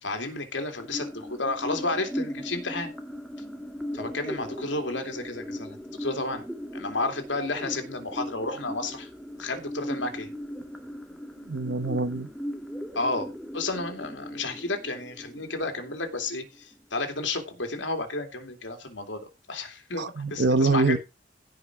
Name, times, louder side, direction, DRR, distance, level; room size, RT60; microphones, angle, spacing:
voice 1, 0.0-2.9 3.9-6.5 6.7-9.1 9.4-10.3 12.9-21.0, left 2 dB, 75° left, 2.7 m, -32 dB
sound 1, 0.8-16.8, equal, ahead, 1.6 m, -38 dB
voice 2, 11.4-12.3 20.0-21.0, right 3 dB, 65° right, 0.9 m, -24 dB
16.0 x 5.3 x 4.9 m
head